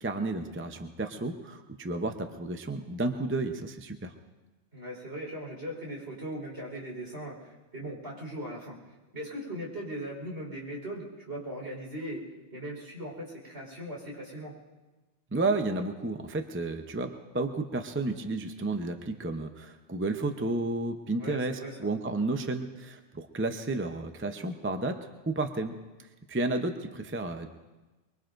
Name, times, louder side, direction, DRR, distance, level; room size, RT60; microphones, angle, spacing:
voice 1, 0.0-4.1 15.3-25.0 25.3-27.5, right 2 dB, 15° right, 6 dB, 0.6 m, -32 dB
voice 2, 4.7-8.8 9.1-12.2 12.5-14.5 21.2-21.9, right 1 dB, 65° right, -2 dB, 4.8 m, -39 dB
23.5 x 23.5 x 2.6 m, 1.2 s
omnidirectional pair, 1.2 m